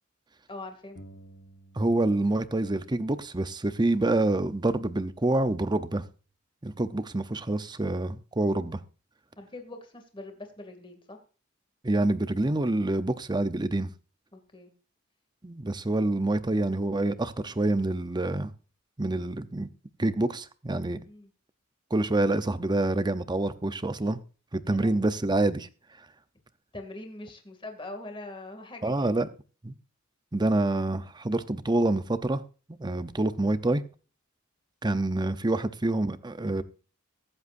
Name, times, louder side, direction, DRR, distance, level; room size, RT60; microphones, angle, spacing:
voice 1, 0.5-1.0 9.4-11.2 14.3-14.7 21.1-21.3 24.7-25.0 26.7-28.9, left 2 dB, 25° left, 2.4 m, -42 dB
sound 1, 1.0-2.5 2.7-4.5, right 1 dB, 50° left, 1.6 m, -54 dB
voice 2, 1.8-6.0 6.6-8.8 11.8-13.9 15.4-18.5 19.0-19.7 20.0-21.0 21.9-24.2 24.5-25.7 28.8-29.3 29.6-29.7 30.3-32.4 32.8-33.8 34.8-36.6, right 2 dB, 20° right, 0.7 m, -27 dB
23.0 x 8.0 x 2.6 m
head